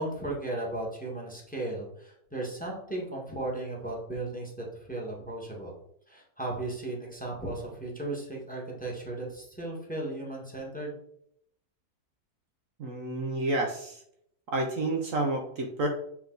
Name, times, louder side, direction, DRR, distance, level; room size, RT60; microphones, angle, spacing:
voice 1, 0.0-5.7 6.1-11.0, right 2 dB, 5° left, -1 dB, 1.5 m, -36 dB
voice 2, 12.8-14.0 14.5-15.9, right 2 dB, 60° right, 2 dB, 1.1 m, -30 dB
7.3 x 3.6 x 3.9 m, 0.72 s
omnidirectional pair, 1.6 m